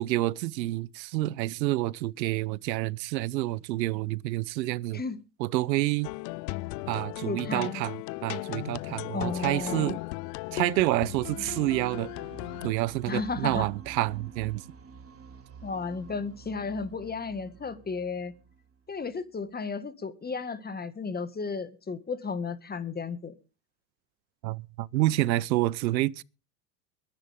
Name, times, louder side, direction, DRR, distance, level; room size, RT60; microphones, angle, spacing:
voice 1, 0.0-5.0 5.4-6.1 6.9-10.0 10.5-12.1 12.6-14.6 24.4-26.2, right 17 dB, 90° right, 0.8 m, -28 dB
sound 1, 6.0-12.7, left 22 dB, 75° left, 0.6 m, -37 dB
voice 2, 7.3-7.8 9.1-10.0 13.1-13.7 15.6-18.3 18.9-23.3, left 4 dB, 20° left, 1.8 m, -34 dB
sound 2, 11.0-19.2, right 6 dB, 25° right, 3.3 m, -48 dB
22.5 x 10.0 x 3.6 m
supercardioid pair, 100°, 50 cm